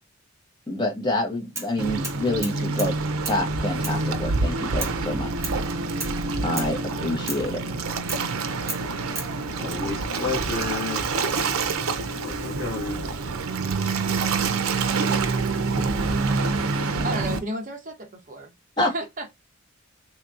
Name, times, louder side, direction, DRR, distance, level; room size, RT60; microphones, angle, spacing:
voice 1, 0.7-3.0 3.3-5.3 6.4-7.6 18.8-18.9, left 1 dB, 20° left, 1.0 m, -27 dB
sound 1, 1.6-1.7 2.0-3.0 3.2-3.4 3.8-4.0 4.8-5.0 5.4-5.6 6.0-6.2 6.6-6.8 7.3-7.5 8.1-8.3 8.7-9.3, right 3 dB, 15° right, 0.9 m, -33 dB
Waves surf, 1.8-17.4, right 4 dB, 80° right, 0.5 m, -26 dB
voice 2, 9.6-11.1 12.2-13.0, left 4 dB, 70° left, 1.6 m, -31 dB
voice 3, 17.0-18.5 18.8-19.3, right 2 dB, 40° right, 0.9 m, -32 dB
3.4 x 2.8 x 2.4 m
head